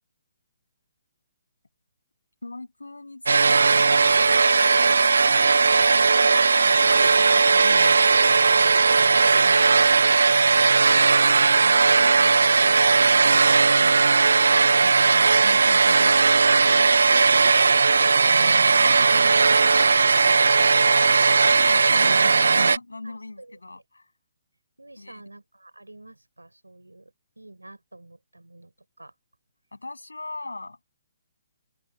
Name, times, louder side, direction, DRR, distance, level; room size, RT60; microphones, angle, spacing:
voice 1, 2.4-4.2 4.6-5.3 5.6-8.0 9.4-9.8 11.5-13.4 13.7-16.3 16.7-17.5 20.3-20.9 21.4-24.1 25.0-25.2 29.7-30.8, left 2 dB, 85° left, 7.1 m, -40 dB
sound 1, 3.3-22.8, right 4 dB, 70° right, 0.6 m, -18 dB
voice 2, 4.7-5.1 8.6-9.7 18.5-19.3 23.0-23.6 24.8-29.1, right 2 dB, 90° right, 4.2 m, -48 dB
figure-of-eight pair, 135°, 0 cm